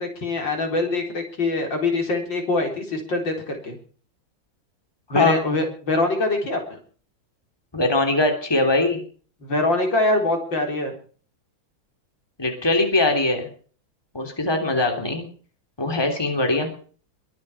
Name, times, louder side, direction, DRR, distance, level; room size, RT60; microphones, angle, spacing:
voice 1, 0.0-3.8 5.1-6.8 9.4-10.9, left 2 dB, 70° left, 3 dB, 4.9 m, -24 dB
voice 2, 7.7-9.0 12.4-13.5 14.1-15.3 15.8-16.7, left 2 dB, 10° left, 4 dB, 3.3 m, -21 dB
22.5 x 8.6 x 7.1 m, 0.43 s
omnidirectional pair, 2.1 m